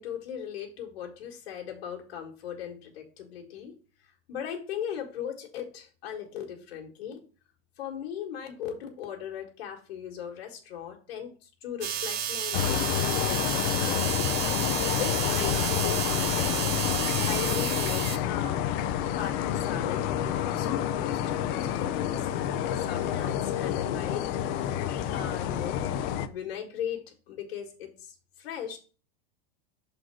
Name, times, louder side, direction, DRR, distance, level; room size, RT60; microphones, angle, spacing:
voice 1, 0.0-3.7 4.3-7.2 7.8-14.1 15.0-16.6 17.2-18.7 19.1-22.2 22.8-24.2 25.1-25.8 26.3-28.8, left 9 dB, 85° left, 1 dB, 1.6 m, -38 dB
sound 1, 11.8-18.2, right 9 dB, 35° right, 0.7 m, -31 dB
sound 2, 12.5-26.3, left 10 dB, 30° left, 0.4 m, -28 dB
6.3 x 4.0 x 4.5 m, 0.37 s
supercardioid pair, 155°, 30 cm